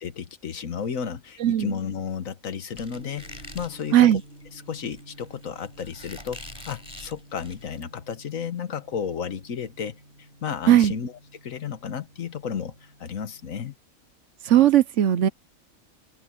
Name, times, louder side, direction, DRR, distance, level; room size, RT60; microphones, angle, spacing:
voice 1, 0.0-4.1 4.5-10.0 10.4-11.1 11.4-13.7, left 7 dB, 70° left, 1.6 m, -33 dB
voice 2, 1.4-1.7 3.9-4.2 10.7-10.9 14.4-15.3, right 11 dB, 65° right, 1.0 m, -17 dB
Squeak, 2.7-7.8, left 1 dB, 15° left, 4.9 m, -45 dB
Gong, 2.9-13.6, right 1 dB, 45° right, 7.9 m, -51 dB
omnidirectional pair, 1.4 m